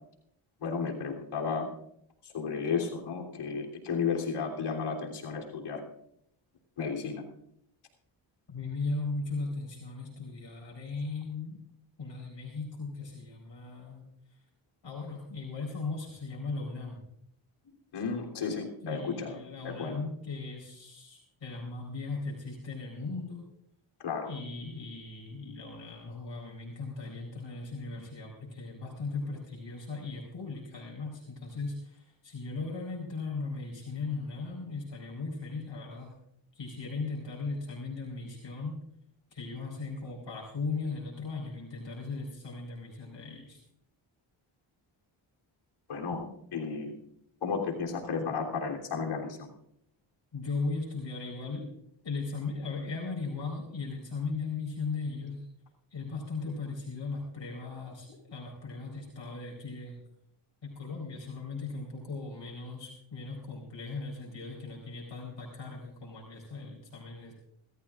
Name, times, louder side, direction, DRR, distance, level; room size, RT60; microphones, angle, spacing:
voice 1, 0.6-1.7 2.2-5.8 6.8-7.2 17.9-19.4 19.6-20.0 24.0-24.3 45.9-47.0 47.4-49.5, left 5 dB, 90° left, 0 dB, 3.4 m, -33 dB
voice 2, 8.5-11.6 12.0-14.0 14.8-17.0 17.6-17.8 18.8-23.5 24.2-36.1 36.5-38.8 39.3-43.6 50.3-51.8 52.0-55.4 55.9-60.0 60.6-67.3, left 3 dB, 60° left, -2 dB, 4.4 m, -37 dB
23.5 x 14.0 x 2.5 m, 0.72 s
cardioid pair, 65°, 49 cm